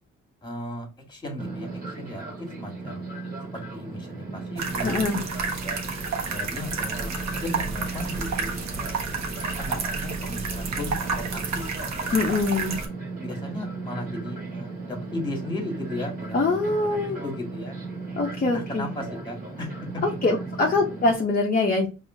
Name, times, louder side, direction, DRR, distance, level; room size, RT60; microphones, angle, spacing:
voice 1, 0.4-3.0 3.5-5.0 5.4-5.8 6.3-9.1 9.6-11.7 12.0-12.3 13.2-17.8 18.4-20.0, left 1 dB, 15° left, 1 dB, 1.6 m, -36 dB
Fixed-wing aircraft airplane, 1.4-21.1, right 3 dB, 30° right, 1.7 m, -36 dB
sound 1, 4.6-12.9, right 4 dB, 65° right, 1.1 m, -31 dB
voice 2, 4.8-5.2 12.1-12.8 16.3-17.2 18.2-18.9 20.2-21.9, left 3 dB, 30° left, 0 dB, 0.8 m, -23 dB
4.8 x 2.8 x 2.6 m, 0.31 s
cardioid pair, 105°, 30 cm